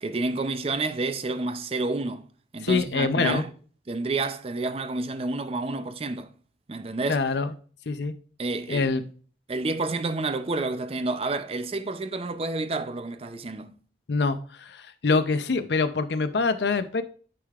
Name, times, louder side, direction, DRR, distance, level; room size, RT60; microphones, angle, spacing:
voice 1, 0.0-2.3 2.5-3.5 3.9-6.3 6.7-7.2 8.4-8.9 9.5-13.8, right 3 dB, 35° right, 0.5 m, -29 dB
voice 2, 2.6-3.4 7.1-7.5 7.9-8.1 8.7-9.0 14.1-17.0, left 4 dB, 70° left, 0.6 m, -25 dB
10.0 x 4.8 x 2.4 m
head